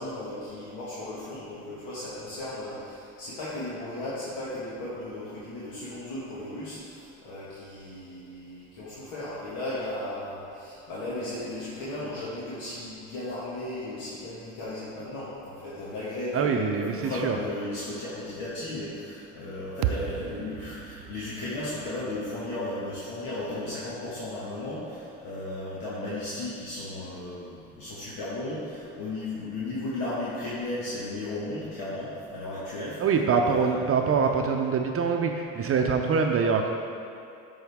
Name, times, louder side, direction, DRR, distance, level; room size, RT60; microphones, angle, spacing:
voice 1, 0.0-33.0 33.4-34.3, left 1 dB, 75° left, -9 dB, 1.7 m, -35 dB
voice 2, 16.3-17.4 33.0-36.7, right 5 dB, 40° right, 3 dB, 0.6 m, -24 dB
sound 1, 19.8-24.1, right 11 dB, 80° right, 0.5 m, -36 dB
9.1 x 6.2 x 3.6 m, 2.5 s
supercardioid pair, 90°, 35 cm